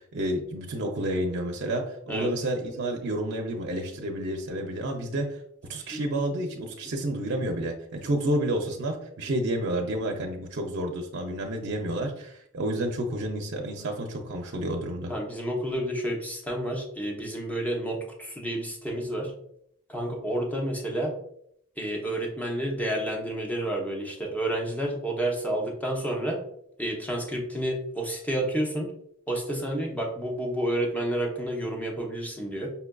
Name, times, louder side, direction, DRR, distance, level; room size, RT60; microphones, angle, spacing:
voice 1, 0.1-5.4 5.7-15.1, right 1 dB, 55° right, 2 dB, 0.5 m, -30 dB
voice 2, 15.1-19.3 19.9-21.1 21.8-26.4 26.8-28.9 29.3-32.7, right 1 dB, 10° left, 0 dB, 0.7 m, -30 dB
5.4 x 2.4 x 2.2 m, 0.71 s
head